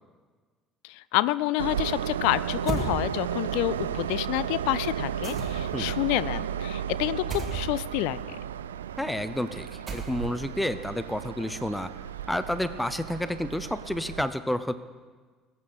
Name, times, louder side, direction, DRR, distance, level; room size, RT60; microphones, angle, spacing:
voice 1, 0.9-8.4, left 17 dB, 65° left, 18 dB, 0.4 m, -28 dB
Train, 1.6-14.2, right 9 dB, 75° right, 0.3 m, -34 dB
sound 1, 2.7-2.9 5.2-5.8 7.3-7.6 9.9-10.4, right 3 dB, 30° right, 2.5 m, -33 dB
voice 2, 9.0-11.9 12.3-14.7, left 1 dB, 5° left, 13 dB, 0.6 m, -30 dB
21.0 x 8.6 x 4.3 m, 1.5 s
figure-of-eight pair, 55°, 0 cm